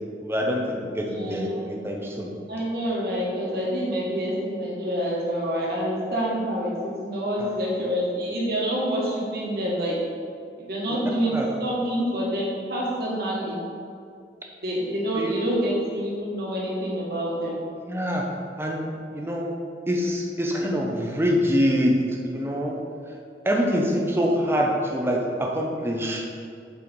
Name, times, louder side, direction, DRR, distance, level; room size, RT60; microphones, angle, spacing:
voice 1, 0.2-2.3 7.4-7.5 11.3-11.5 15.1-15.3 17.9-18.2 18.6-18.9 19.1-19.5 19.9-22.0 22.2-22.8 23.4-26.2, equal, 15° right, 0 dB, 0.8 m, -25 dB
voice 2, 1.0-1.8 2.5-10.0 10.6-13.6 14.6-17.6, equal, 55° right, -4 dB, 1.7 m, -27 dB
7.9 x 4.4 x 5.4 m, 2.4 s
head